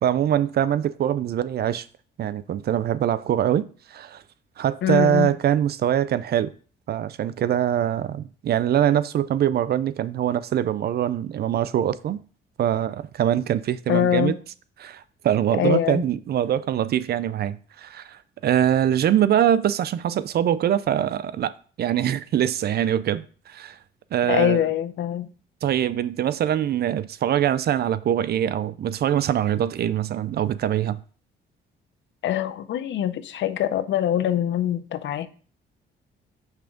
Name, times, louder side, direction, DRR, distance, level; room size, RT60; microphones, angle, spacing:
voice 1, 0.0-1.9 2.2-4.2 4.6-6.5 6.9-12.2 12.6-14.3 14.8-21.5 21.8-23.8 24.1-24.6 25.6-31.0, right 10 dB, 55° right, 0.4 m, -23 dB
voice 2, 4.8-5.3 13.9-14.4 15.6-16.0 24.3-25.3 32.2-35.3, left 11 dB, 70° left, 0.6 m, -23 dB
5.6 x 3.4 x 5.1 m
cardioid pair, 90°, 20 cm